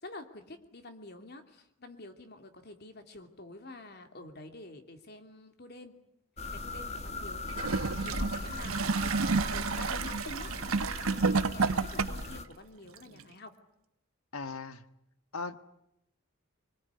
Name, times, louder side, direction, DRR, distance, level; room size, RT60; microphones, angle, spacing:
voice 1, 0.0-5.9 6.5-9.1 9.4-13.6, left 2 dB, 50° left, 6 dB, 2.9 m, -48 dB
sound 1, 6.4-12.4, left 2 dB, 30° left, 1.8 m, -39 dB
Gurgling / Toilet flush, 7.5-12.4 13.2-13.3, right 4 dB, 85° right, 1.0 m, -30 dB
voice 2, 14.3-14.8 15.3-15.6, left 4 dB, 90° left, 10 dB, 1.7 m, -38 dB
24.5 x 21.5 x 9.7 m, 0.80 s
head